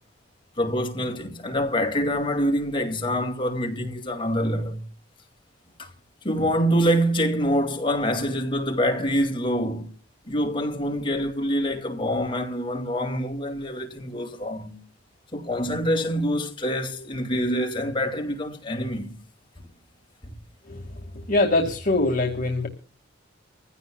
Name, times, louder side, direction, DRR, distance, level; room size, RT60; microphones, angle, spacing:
voice 1, 0.6-4.9 5.8-5.9 6.2-9.9 10.3-14.8 15.3-19.2, equal, 25° left, 2.3 m, -25 dB
voice 2, 21.3-22.7, left 2 dB, 45° left, 2.0 m, -22 dB
25.5 x 15.5 x 2.3 m
head